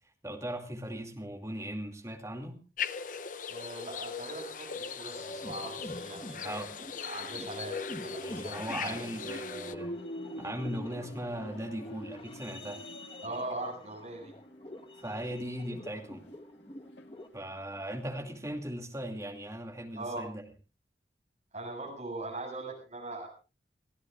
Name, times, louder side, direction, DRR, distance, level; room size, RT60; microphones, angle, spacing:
voice 1, 0.2-2.6 6.4-6.7 8.2-9.9 10.4-12.9 14.9-16.3 17.3-20.5, right 1 dB, 15° right, 2 dB, 2.5 m, -38 dB
sound 1, 2.8-9.7, left 6 dB, 45° left, 0.7 m, -39 dB
voice 2, 3.5-6.6 7.0-9.0 13.2-14.3 20.0-20.2 21.5-23.3, right 2 dB, 40° right, 0 dB, 7.6 m, -40 dB
sound 2, 5.1-17.3, left 1 dB, 30° left, 1.3 m, -47 dB
sound 3, 8.8-17.9 18.2-18.5, equal, 85° left, 2.0 m, -45 dB
29.5 x 16.0 x 2.5 m, 0.33 s
head